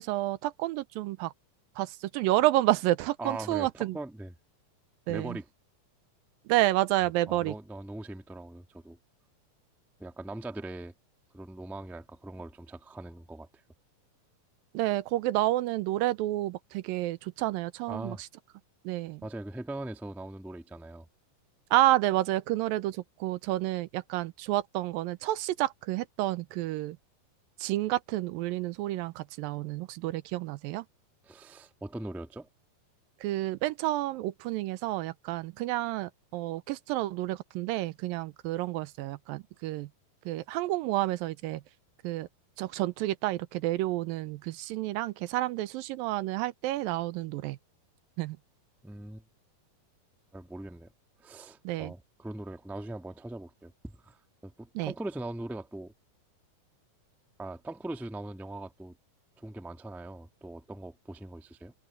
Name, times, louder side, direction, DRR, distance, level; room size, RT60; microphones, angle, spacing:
voice 1, 0.0-1.3 1.8-4.0 5.1-5.4 6.5-7.5 14.7-18.2 18.9-19.2 21.7-27.0 27.6-30.9 33.2-39.9 40.3-41.6 42.0-42.3 42.6-47.6 48.2-48.4 51.6-51.9 54.8-54.9, right 16 dB, 85° right, 2.4 m, -30 dB
voice 2, 3.2-4.3 5.1-5.4 7.3-9.0 10.0-10.9 11.3-13.6 17.9-18.2 19.2-21.1 31.2-32.5 48.8-49.2 50.3-50.9 51.2-55.9 57.4-58.9 59.4-61.7, right 2 dB, ahead, 0.4 m, -41 dB
omnidirectional pair, 4.1 m